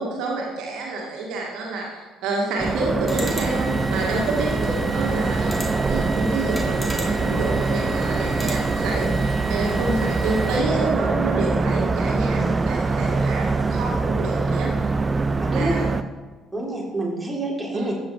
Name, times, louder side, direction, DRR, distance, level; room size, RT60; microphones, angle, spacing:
voice 1, 0.0-14.7 15.5-15.9 17.7-17.9, right 2 dB, 60° right, -1 dB, 2.1 m, -28 dB
sound 1, 2.6-16.0, right 3 dB, 25° right, 0.7 m, -23 dB
sound 2, 3.1-10.6, right 1 dB, 10° left, 2.9 m, -33 dB
voice 2, 15.4-15.7 16.5-17.9, right 2 dB, 10° right, -3 dB, 4.0 m, -28 dB
14.0 x 8.4 x 4.9 m, 1.3 s
figure-of-eight pair, 50°, 0 cm